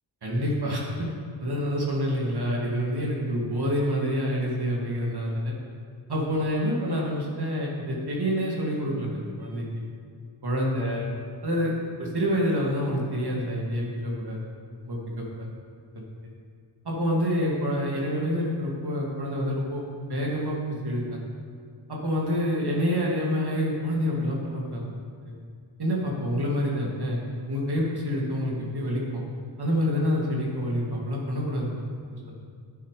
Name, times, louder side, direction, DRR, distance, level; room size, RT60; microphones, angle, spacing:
voice 1, 0.2-1.1 1.4-5.5 6.1-9.6 10.4-11.0 11.4-11.7 12.0-14.4 14.8-15.5 15.9-16.0 16.8-19.8 20.1-20.6 20.8-21.2 21.9-24.8 25.8-27.2 27.5-29.2 29.6-31.7 32.1-32.2, equal, 55° right, -3 dB, 2.5 m, -27 dB
11.0 x 10.5 x 5.0 m, 2.1 s
wide cardioid pair, 130°, 47 cm